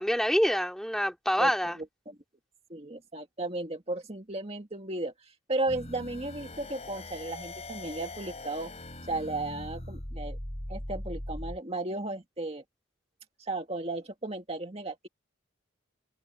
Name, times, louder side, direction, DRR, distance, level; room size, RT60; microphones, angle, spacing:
voice 1, 0.0-1.8, equal, ahead, 2.6 m, -26 dB
voice 2, 1.4-1.7 2.1-2.2 2.7-8.7 9.1-10.4 10.7-12.6 13.4-15.1, right 2 dB, 30° right, 2.0 m, -35 dB
sound 1, 5.7-11.6, left 1 dB, 30° left, 5.0 m, -40 dB
head